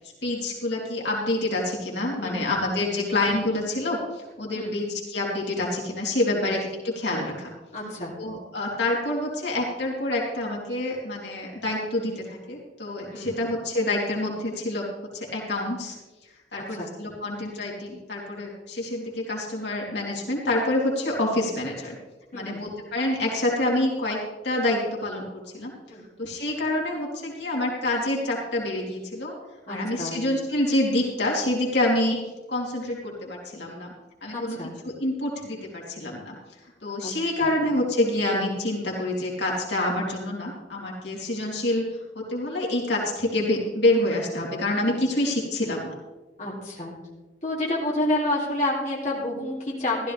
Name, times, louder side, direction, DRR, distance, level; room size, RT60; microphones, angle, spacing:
voice 1, 0.2-7.5 8.2-14.9 15.1-15.9 16.5-21.9 22.3-24.2 24.4-25.3 25.5-25.7 26.2-29.3 29.7-32.2 32.5-33.9 34.2-34.6 34.8-36.3 36.8-41.8 42.1-45.9, left 1 dB, 75° left, -3 dB, 3.2 m, -27 dB
voice 2, 2.2-2.5 2.9-3.1 4.5-4.8 6.3-6.4 7.7-8.1 13.1-13.3 16.6-16.9 22.3-22.6 25.9-26.0 29.7-30.2 34.3-34.7 37.0-37.1 37.4-37.5 46.4-46.9 47.4-50.1, left 1 dB, 45° left, -5 dB, 3.1 m, -29 dB
15.0 x 13.5 x 3.4 m, 1.2 s
head